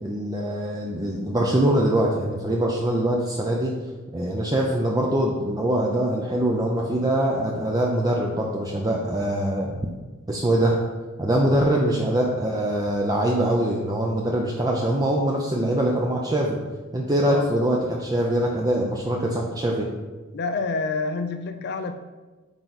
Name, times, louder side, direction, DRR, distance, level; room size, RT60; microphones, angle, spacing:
voice 1, 0.0-3.7 4.1-9.8 10.3-10.8 11.2-16.6 16.9-19.9, right 1 dB, 20° right, -1 dB, 0.5 m, -23 dB
voice 2, 20.3-21.9, left 3 dB, 50° left, 7 dB, 0.4 m, -27 dB
8.8 x 3.9 x 4.0 m, 1.3 s
head